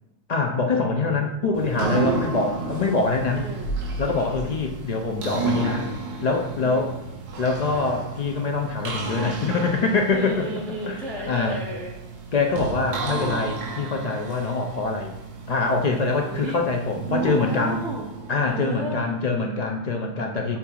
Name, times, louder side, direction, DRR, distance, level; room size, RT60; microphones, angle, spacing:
voice 1, 0.3-3.4 4.0-5.9 6.2-6.9 7.4-10.4 10.8-11.0 11.3-11.6 12.3-15.1 15.5-17.8 18.3-20.6, left 3 dB, 60° left, 2 dB, 0.4 m, -24 dB
voice 2, 0.9-1.3 2.2-2.5 3.3-3.7 4.3-4.6 6.6-6.9 10.1-11.9 15.9-16.6 17.4-18.1 18.5-19.1 20.5-20.6, equal, ahead, -1 dB, 0.4 m, -34 dB
sound 1, 1.5-19.4, right 3 dB, 75° right, 0.9 m, -32 dB
6.7 x 2.8 x 2.3 m, 0.98 s
omnidirectional pair, 1.1 m